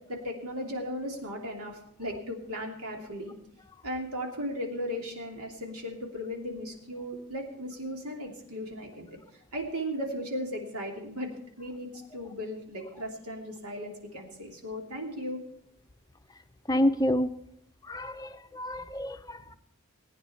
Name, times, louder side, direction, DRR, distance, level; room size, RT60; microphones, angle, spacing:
voice 1, 0.1-3.3 3.8-9.1 9.5-11.3 11.6-15.4, equal, 85° right, 1 dB, 2.8 m, -36 dB
voice 2, 16.7-17.3 17.9-19.6, left 1 dB, 15° left, 9 dB, 0.6 m, -28 dB
19.5 x 9.5 x 4.4 m, 0.74 s
head